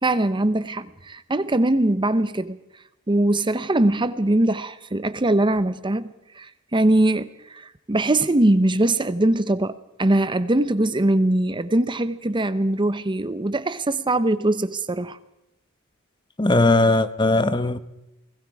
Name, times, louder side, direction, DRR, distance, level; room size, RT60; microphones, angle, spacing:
voice 1, 0.0-2.6 3.1-15.2, right 1 dB, 20° right, 0.8 m, -22 dB
voice 2, 16.4-17.8, left 2 dB, 20° left, 1.0 m, -18 dB
30.0 x 20.5 x 4.8 m
head